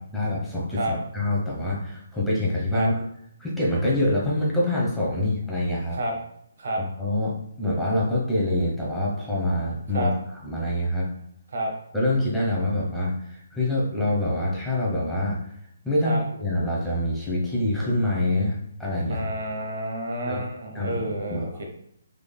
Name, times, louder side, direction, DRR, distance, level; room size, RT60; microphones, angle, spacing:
voice 1, 0.1-3.0 3.4-6.0 7.0-11.1 11.9-15.5 15.8-19.3 20.2-20.4 20.7-21.0 21.3-21.6, left 1 dB, ahead, -7 dB, 0.8 m, -25 dB
voice 2, 19.1-21.6, right 1 dB, 60° right, 1 dB, 0.8 m, -29 dB
3.6 x 3.2 x 2.2 m, 0.71 s
figure-of-eight pair, 140°, 0 cm